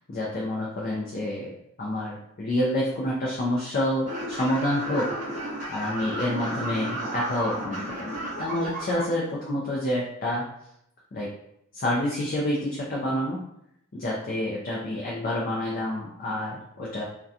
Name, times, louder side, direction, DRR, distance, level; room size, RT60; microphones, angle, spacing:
voice 1, 0.1-1.5 1.8-5.1 5.7-8.1 8.4-10.4 11.1-11.3 11.7-13.4 13.9-17.0, left 1 dB, 40° left, -4 dB, 0.4 m, -28 dB
sound 1, 4.0-9.0, right 1 dB, 35° right, 0.6 m, -33 dB
2.6 x 2.2 x 2.3 m, 0.77 s
head